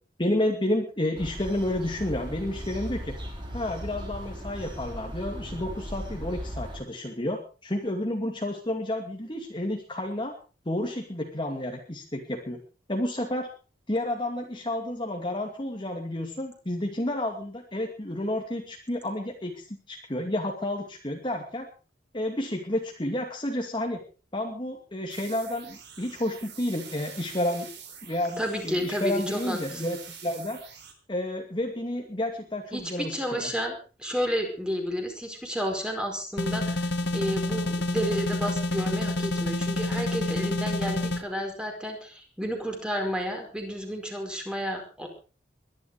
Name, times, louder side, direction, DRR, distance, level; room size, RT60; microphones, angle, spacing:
voice 1, 0.2-3.1 3.5-10.3 10.7-12.6 12.9-13.5 13.9-21.7 22.1-24.0 24.3-27.7 28.0-30.6 31.1-33.5, left 1 dB, 25° left, 2 dB, 2.4 m, -30 dB
sound 1, 1.1-6.8, equal, 25° right, 5.7 m, -37 dB
sound 2, 25.1-30.9, right 7 dB, 60° right, 4.3 m, -45 dB
voice 2, 28.4-29.8 32.7-45.1, equal, 5° right, 3 dB, 4.8 m, -31 dB
sound 3, 36.4-41.2, left 1 dB, 65° left, 1.8 m, -28 dB
22.0 x 11.5 x 4.9 m, 0.37 s
head